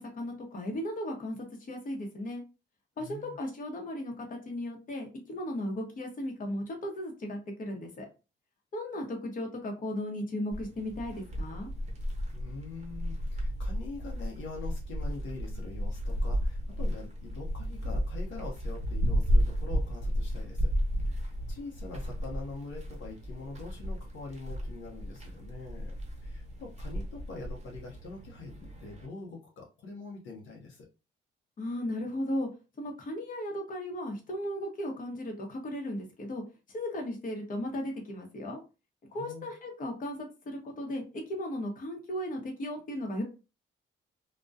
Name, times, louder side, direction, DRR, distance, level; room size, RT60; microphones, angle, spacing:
voice 1, 0.0-2.4 3.0-8.1 8.7-11.7 31.6-32.5 32.8-36.4 36.7-38.6 39.1-43.2, left 1 dB, 45° left, 2 dB, 0.8 m, -36 dB
voice 2, 3.0-3.4 12.3-20.7 21.1-30.8 39.2-39.5, left 3 dB, 75° left, -1 dB, 0.7 m, -44 dB
sound 1, 10.5-29.1, equal, 35° right, 0.9 m, -33 dB
2.2 x 2.2 x 2.5 m, 0.31 s
cardioid pair, 90°, 20 cm